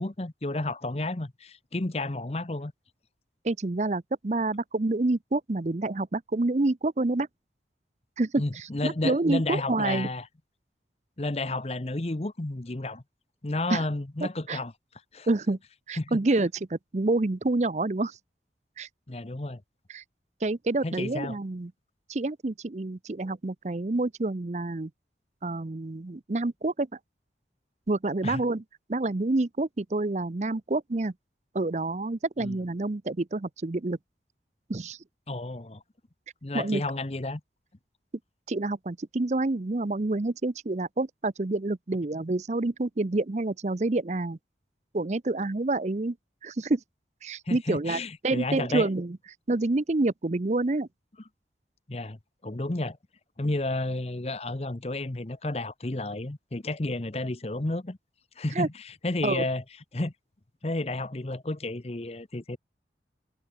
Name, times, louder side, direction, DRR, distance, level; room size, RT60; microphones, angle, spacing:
voice 1, 0.0-2.7 8.4-10.3 11.2-13.0 13.4-14.7 15.1-15.3 16.0-16.2 19.1-19.6 20.8-21.4 28.2-28.4 32.4-32.6 35.3-35.8 36.4-37.4 47.5-48.9 51.9-53.0 53.4-58.0 58.4-59.6 59.9-60.1 60.6-62.6, left 2 dB, 35° left, 0.9 m, -31 dB
voice 2, 3.4-7.3 8.2-10.1 13.7-13.9 14.2-14.6 15.3-15.6 15.9-18.2 18.8-18.9 19.9-20.0 20.4-21.7 22.1-24.9 25.4-26.9 27.9-28.6 28.9-31.1 31.5-34.0 34.7-35.0 36.5-36.8 38.5-44.4 44.9-46.2 46.4-46.8 47.2-49.2 49.5-50.9 58.5-58.7 59.2-59.4, right 2 dB, 40° right, 0.6 m, -28 dB
head